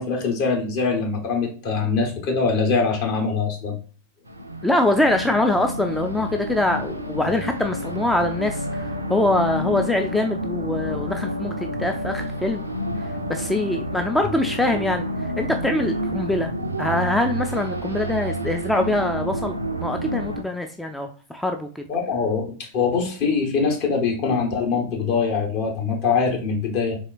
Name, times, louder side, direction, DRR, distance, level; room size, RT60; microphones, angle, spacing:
voice 1, 0.0-3.8 21.9-27.0, left 5 dB, 45° left, 1 dB, 1.2 m, -23 dB
sound 1, 4.3-20.4, equal, 85° right, 0.4 m, -29 dB
voice 2, 4.6-12.6 13.3-15.1 15.4-16.5 16.8-21.9, left 2 dB, 5° left, 4 dB, 0.3 m, -23 dB
4.1 x 3.2 x 2.4 m, 0.39 s
figure-of-eight pair, 90°, 0 cm